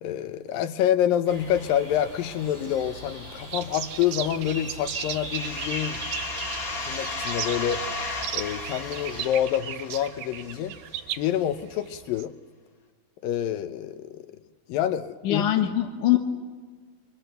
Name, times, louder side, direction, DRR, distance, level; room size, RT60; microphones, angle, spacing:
voice 1, 0.0-6.0 6.9-7.8 8.3-10.8 11.2-12.3 13.2-14.3 14.7-15.4, left 10 dB, 80° left, 10 dB, 2.7 m, -27 dB
sound 1, 1.3-9.3, right 1 dB, 20° right, 7.8 m, -39 dB
sound 2, 3.5-12.3, right 10 dB, 75° right, 2.7 m, -37 dB
sound 3, 5.3-10.8, left 3 dB, 35° left, 1.6 m, -35 dB
voice 2, 15.2-16.2, left 12 dB, 65° left, 3 dB, 2.8 m, -22 dB
29.5 x 24.5 x 6.9 m, 1.4 s
omnidirectional pair, 4.0 m